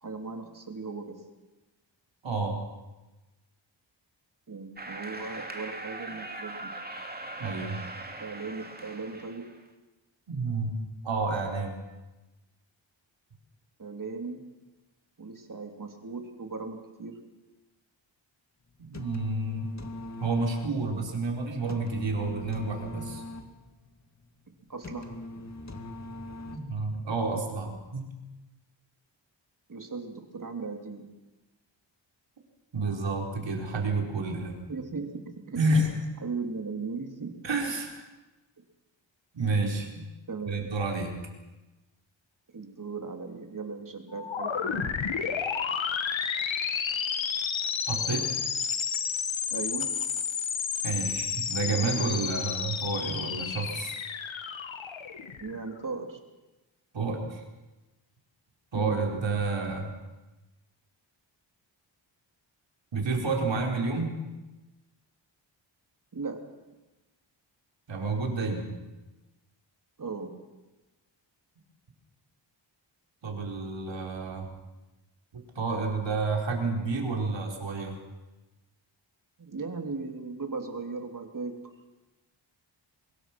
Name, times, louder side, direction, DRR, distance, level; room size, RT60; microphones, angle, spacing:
voice 1, 0.0-1.1 4.5-6.7 8.2-9.5 13.8-14.4 15.2-17.2 24.7-25.1 29.7-31.0 34.7-35.1 35.5-35.6 36.2-37.3 40.3-40.7 42.5-44.9 49.5-49.9 55.4-56.2 58.7-59.0 66.1-66.4 70.0-70.3 79.4-81.7, right 4 dB, 40° right, 4 dB, 3.3 m, -37 dB
voice 2, 2.2-2.6 7.4-7.8 10.3-10.7 11.0-11.8 18.8-19.7 20.2-23.2 26.5-28.1 32.7-34.6 35.6-35.9 37.4-38.0 39.3-40.1 40.5-41.1 47.9-48.3 50.8-54.0 56.9-57.4 58.7-59.9 62.9-64.1 67.9-68.7 73.2-74.5 75.3-78.0, right 3 dB, 65° right, 1 dB, 4.7 m, -30 dB
sound 1, 4.8-9.6, right 2 dB, 20° right, 2.5 m, -40 dB
sound 2, 18.7-27.0, left 1 dB, 35° left, 2.3 m, -42 dB
sound 3, 44.1-55.8, left 7 dB, 75° left, 1.8 m, -31 dB
24.0 x 21.5 x 6.1 m, 1.1 s
wide cardioid pair, 95°, 47 cm